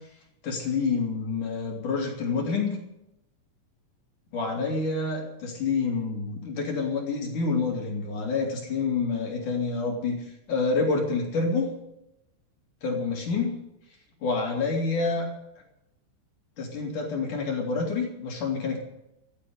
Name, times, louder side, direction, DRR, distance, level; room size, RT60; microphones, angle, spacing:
voice 1, 0.4-2.8 4.3-10.2 10.5-11.7 12.8-13.5 14.2-15.3 16.6-18.8, left 4 dB, 45° left, 1 dB, 3.3 m, -27 dB
14.5 x 10.0 x 8.5 m, 0.85 s
omnidirectional pair, 5.9 m